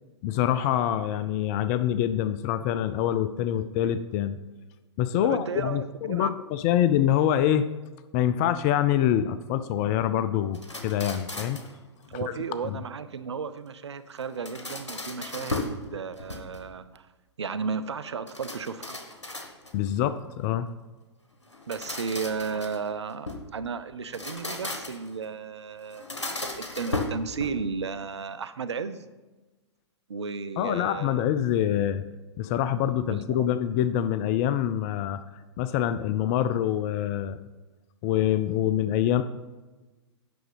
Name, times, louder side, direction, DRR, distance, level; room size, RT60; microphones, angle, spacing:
voice 1, 0.2-4.4 5.0-7.6 8.1-11.6 12.2-12.3 12.6-12.8 19.7-20.7 30.6-32.1 32.4-35.2 35.6-37.4 38.0-39.2, left 11 dB, 35° left, 12 dB, 0.4 m, -25 dB
voice 2, 5.2-6.3 12.1-17.1 17.4-19.0 21.7-26.2 26.5-29.0 30.1-31.3 33.1-33.5, right 5 dB, 75° right, 13 dB, 0.6 m, -34 dB
sound 1, 10.5-11.8 14.2-15.8 16.2-16.8 18.3-19.9 21.5-23.5 24.0-25.1 25.9-27.8, left 2 dB, 85° left, 1.2 m, -36 dB
9.3 x 6.0 x 5.1 m, 1.2 s
figure-of-eight pair, 110°, 15 cm